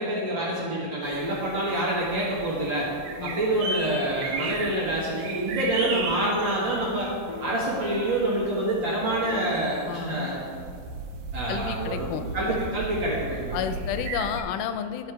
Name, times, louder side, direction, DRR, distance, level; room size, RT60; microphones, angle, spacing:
voice 1, 0.0-2.9 3.2-7.1 7.4-10.4 11.3-12.1 12.3-13.6, right 1 dB, 50° right, -6 dB, 1.6 m, -27 dB
sound 1, 1.0-14.4, right 3 dB, 85° right, 2.4 m, -36 dB
sound 2, 1.1-4.2 5.0-10.7, left 3 dB, 45° left, 1.4 m, -42 dB
voice 2, 11.5-12.6 13.5-15.1, left 9 dB, 90° left, 9 dB, 2.1 m, -31 dB
11.5 x 4.5 x 4.7 m, 2.2 s
omnidirectional pair, 3.6 m